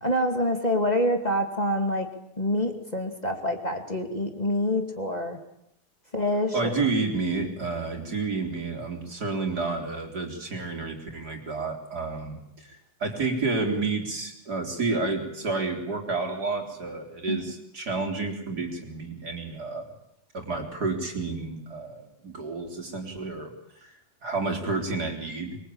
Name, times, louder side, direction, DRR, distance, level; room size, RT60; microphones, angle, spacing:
voice 1, 0.0-2.1 2.4-5.4 6.1-6.7 17.3-17.5, left 1 dB, 20° left, 4 dB, 2.6 m, -26 dB
voice 2, 6.5-19.9 20.3-23.5 23.8-23.9 24.2-25.6, right 3 dB, 60° right, 3 dB, 4.6 m, -30 dB
25.0 x 23.5 x 8.8 m, 0.78 s
omnidirectional pair, 1.9 m